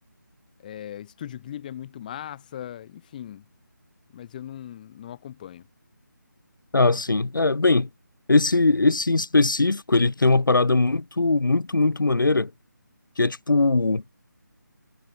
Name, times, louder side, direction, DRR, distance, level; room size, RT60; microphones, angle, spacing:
voice 1, 0.6-3.5 4.1-5.7, left 10 dB, 25° left, 6.7 m, -39 dB
voice 2, 6.7-7.9 8.3-12.5 13.2-14.0, left 3 dB, 80° left, 1.1 m, -20 dB
figure-of-eight pair, 160°, 11 cm